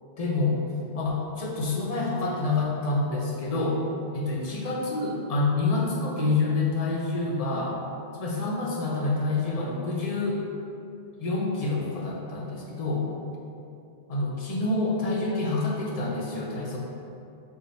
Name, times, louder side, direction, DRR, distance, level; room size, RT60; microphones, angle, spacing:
voice 1, 0.2-0.6 0.9-3.8 4.1-7.7 8.2-10.4 11.2-13.1 14.1-16.8, left 3 dB, 45° left, -2 dB, 0.6 m, -27 dB
3.9 x 2.5 x 4.1 m, 2.7 s
omnidirectional pair, 1.1 m